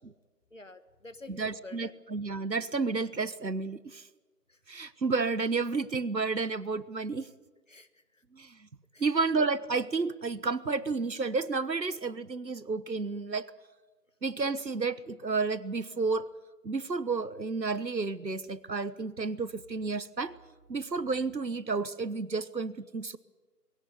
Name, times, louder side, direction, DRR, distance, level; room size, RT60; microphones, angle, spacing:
voice 1, 0.5-1.9 4.5-4.6 7.7-8.2 8.9-9.1, left 2 dB, 50° left, 11 dB, 1.5 m, -49 dB
voice 2, 1.3-4.1 4.7-7.3 8.3-8.7 9.0-13.5 14.2-16.3 16.6-20.3 20.7-23.2, right 4 dB, 90° right, 16 dB, 1.3 m, -31 dB
21.0 x 17.0 x 9.7 m, 1.2 s
figure-of-eight pair, 175°, 49 cm